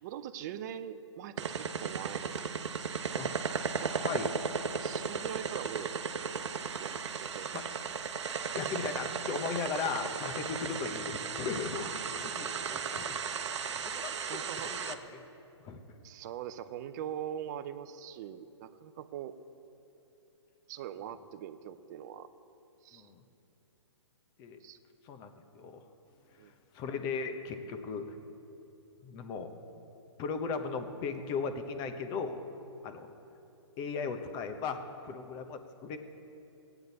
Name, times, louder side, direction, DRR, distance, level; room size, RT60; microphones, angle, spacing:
voice 1, 0.0-3.3 3.8-4.0 4.8-6.0 6.3-6.5 6.8-7.6 11.8-11.9 13.9-14.7 16.0-19.4 20.7-22.3 22.8-23.1 24.6-24.8 26.4-26.5, right 10 dB, 40° right, 12 dB, 0.6 m, -42 dB
sound 1, 1.4-14.9, right 6 dB, 70° right, 0.9 m, -36 dB
voice 2, 3.7-4.4 7.5-7.6 8.6-13.2 13.7-14.1 14.7-15.2 15.6-15.8 22.9-23.2 24.4-24.6 25.0-25.8 26.4-28.1 29.0-29.5 30.2-32.4 32.8-33.1 33.8-36.0, left 5 dB, 25° left, 7 dB, 0.9 m, -37 dB
17.0 x 9.1 x 4.1 m, 2.9 s
hypercardioid pair, 135°, 15 cm